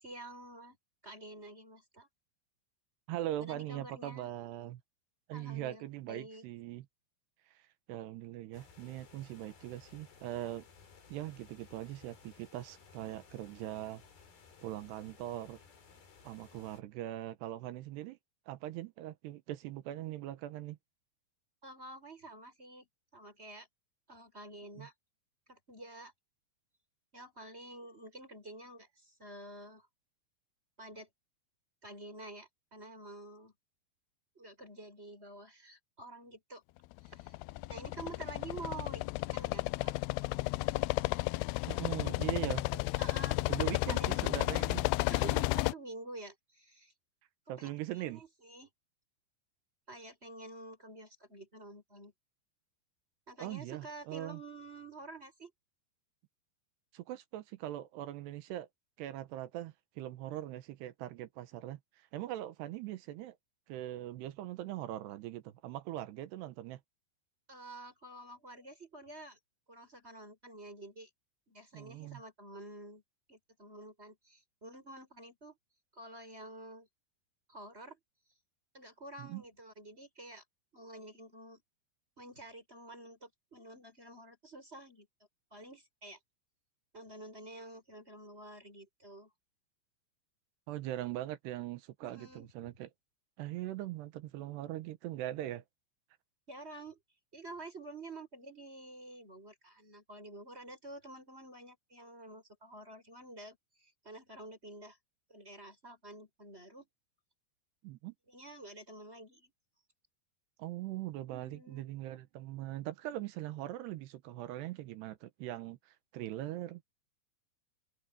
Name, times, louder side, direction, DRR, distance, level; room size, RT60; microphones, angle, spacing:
voice 1, 0.0-0.8 1.0-2.1 3.4-4.3 5.3-5.8 6.1-6.4 21.6-22.9 23.1-23.7 24.1-24.9 25.5-26.1 27.1-29.9 30.8-31.1 31.8-33.5 34.4-36.6 37.0-37.3 37.7-39.1 39.3-39.9 43.0-43.4 43.9-44.2 45.1-46.9 47.6-47.7 48.1-48.7 49.9-52.1 53.3-55.5 67.5-69.4 69.7-71.1 71.5-73.0 73.3-75.6 75.9-76.9 77.5-78.0 78.7-80.4 80.7-81.6 82.2-85.1 85.5-86.2 86.9-89.3 92.0-92.5 96.5-97.0 97.3-105.0 105.3-106.9 108.3-109.5 111.3-111.8, right 2 dB, 15° right, 5.9 m, -49 dB
voice 2, 3.1-4.8 5.3-6.9 7.6-7.7 7.9-10.7 11.1-14.0 14.6-15.6 16.2-18.2 18.5-20.8 24.8-24.9 41.7-42.8 43.5-44.9 47.5-48.2 53.4-54.4 56.9-58.7 59.0-61.8 62.1-63.3 63.7-66.8 71.7-72.2 79.2-79.4 90.7-92.9 93.4-95.6 107.8-108.1 110.6-116.8, right 14 dB, 80° right, 3.1 m, -41 dB
sound 1, 8.5-16.8, left 5 dB, 60° left, 6.1 m, -59 dB
sound 2, 37.1-45.7, left 22 dB, 85° left, 2.5 m, -32 dB
open air
omnidirectional pair, 4.9 m